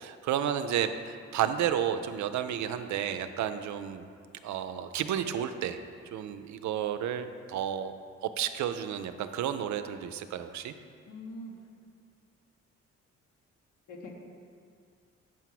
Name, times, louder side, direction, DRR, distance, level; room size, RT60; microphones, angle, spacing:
voice 1, 0.0-4.0 4.4-5.8 6.1-7.9 8.2-10.7, right 9 dB, 70° right, 10 dB, 0.5 m, -31 dB
voice 2, 11.1-11.7 13.9-14.1, left 1 dB, 75° left, -1 dB, 1.5 m, -43 dB
7.4 x 4.6 x 5.9 m, 2.2 s
cardioid pair, 90°, 30 cm